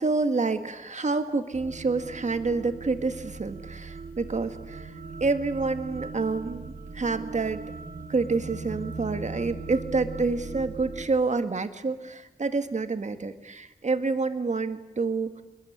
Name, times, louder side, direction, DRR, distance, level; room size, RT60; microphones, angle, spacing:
voice 1, 0.0-4.9 5.2-7.6 8.1-15.4, right 3 dB, 55° right, 9 dB, 1.7 m, -28 dB
sound 1, 1.5-11.1, right 3 dB, 90° right, 1.8 m, -39 dB
27.0 x 22.0 x 10.0 m, 1.0 s
wide cardioid pair, 95°, 15 cm